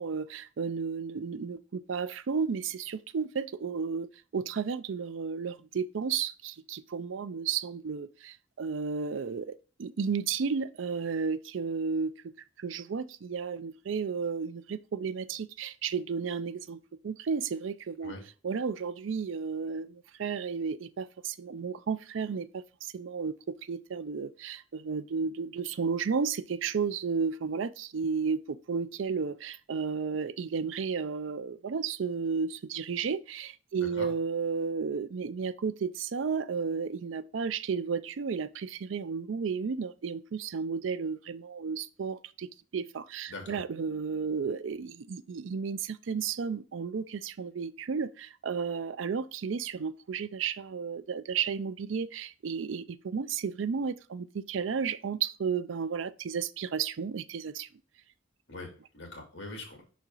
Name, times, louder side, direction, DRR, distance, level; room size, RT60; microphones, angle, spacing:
voice 1, 0.0-12.3 12.6-18.2 18.4-57.7, right 5 dB, 75° right, 0.4 m, -33 dB
voice 2, 33.8-34.1 43.3-43.6 58.5-59.8, left 2 dB, 65° left, 2.2 m, -42 dB
5.9 x 4.2 x 3.8 m
head